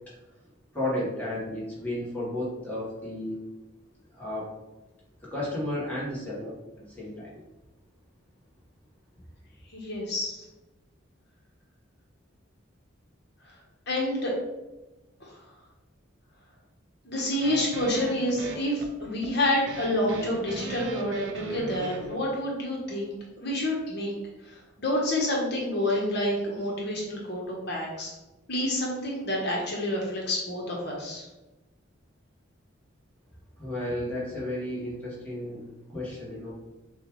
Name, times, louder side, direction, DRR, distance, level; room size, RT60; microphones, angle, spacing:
voice 1, 0.7-3.4 4.1-4.5 5.2-7.3 33.6-35.6 35.9-36.5, left 1 dB, 10° left, -7 dB, 1.3 m, -33 dB
voice 2, 9.7-10.4 13.4-13.6 13.9-14.3 15.2-15.4 17.0-24.1 24.4-28.1 28.5-31.3, left 1 dB, 55° left, -3 dB, 1.1 m, -28 dB
sound 1, 17.4-22.3, right 3 dB, 65° right, 0.6 m, -39 dB
6.9 x 2.4 x 3.1 m, 1.0 s
head